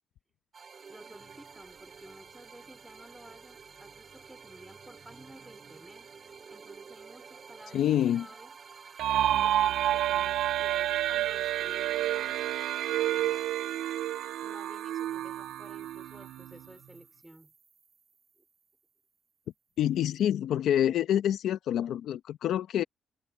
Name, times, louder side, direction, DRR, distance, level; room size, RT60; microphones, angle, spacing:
sound 1, 0.5-19.0, right 5 dB, 40° right, 3.0 m, -52 dB
voice 1, 0.9-6.1 6.5-8.5 9.4-12.5 13.0-13.5 14.4-17.5, right 1 dB, 10° right, 4.7 m, -53 dB
voice 2, 7.7-8.3 19.8-22.8, left 11 dB, 75° left, 0.8 m, -27 dB
sound 2, 9.0-16.6, right 12 dB, 80° right, 0.4 m, -29 dB
cardioid pair, 90°, 0 cm